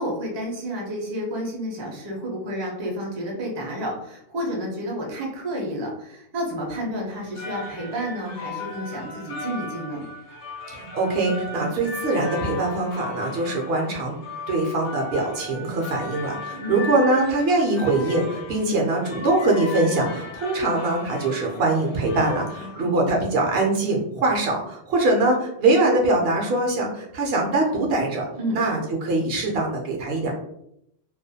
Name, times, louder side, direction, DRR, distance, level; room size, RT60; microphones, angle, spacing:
voice 1, 0.0-10.0 16.5-16.9 22.6-23.2 28.4-28.6, equal, 35° right, -1 dB, 0.5 m, -31 dB
sound 1, 7.1-23.0, left 3 dB, 80° left, 0.9 m, -37 dB
voice 2, 10.7-14.2 14.5-28.3 28.5-30.3, right 2 dB, 65° right, 0 dB, 0.7 m, -23 dB
2.3 x 2.1 x 2.6 m, 0.77 s
omnidirectional pair, 1.2 m